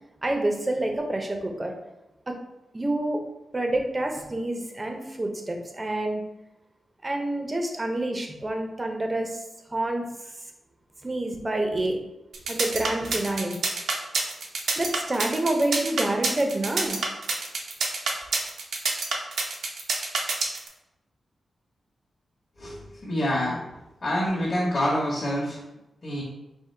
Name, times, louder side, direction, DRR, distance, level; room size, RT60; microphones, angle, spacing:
voice 1, 0.2-1.7 2.3-2.4 2.7-3.2 3.5-6.2 7.0-9.4 9.7-10.1 11.0-12.0 12.5-13.6 14.8-17.0, right 1 dB, 20° right, 3 dB, 0.6 m, -27 dB
sound 1, 12.3-20.7, right 3 dB, 90° right, 0.7 m, -27 dB
voice 2, 22.6-23.7 24.0-25.6 26.0-26.2, equal, 35° left, -6 dB, 1.0 m, -27 dB
3.7 x 2.5 x 4.4 m, 0.96 s
wide cardioid pair, 120°, 0 cm